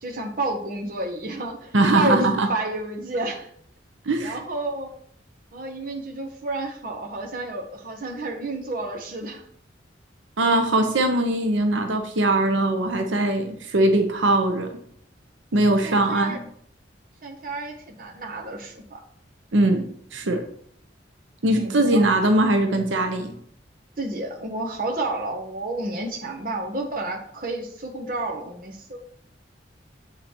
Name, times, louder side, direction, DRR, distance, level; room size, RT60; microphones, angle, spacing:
voice 1, 0.0-3.5 4.2-4.9 5.5-9.4 15.8-16.4 17.2-19.0 21.4-22.2 24.0-29.0, right 2 dB, 45° right, 1 dB, 1.1 m, -30 dB
voice 2, 1.7-2.5 4.1-4.4 10.4-14.7 15.5-16.4 19.5-19.8 20.1-20.4 21.4-23.3, right 2 dB, 90° right, 5 dB, 0.8 m, -21 dB
7.4 x 4.0 x 4.4 m, 0.65 s
head